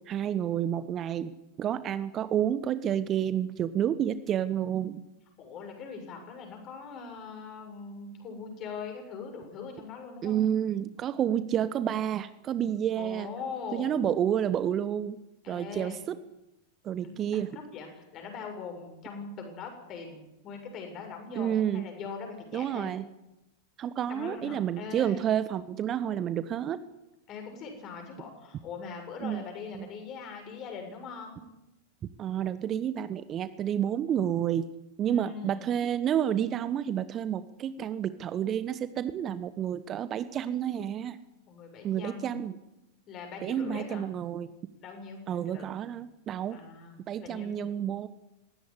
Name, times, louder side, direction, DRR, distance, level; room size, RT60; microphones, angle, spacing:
voice 1, 0.1-1.3 1.6-5.0 10.2-13.3 13.7-15.2 15.5-16.2 16.8-17.5 21.3-21.9 22.5-23.1 23.8-26.8 29.2-29.4 29.7-29.8 32.2-34.7 35.0-41.2 41.8-42.6 43.4-44.5 45.3-46.6 47.1-48.1, right 10 dB, 30° right, 14 dB, 1.1 m, -30 dB
voice 2, 5.4-10.4 13.0-14.0 15.4-16.0 17.0-22.9 24.1-25.2 27.3-31.4 35.0-35.7 41.5-42.4 43.1-44.0 44.8-45.7 46.5-47.5, left 5 dB, 35° left, 4 dB, 7.5 m, -41 dB
20.5 x 17.5 x 9.9 m, 0.93 s
figure-of-eight pair, 90°, 0 cm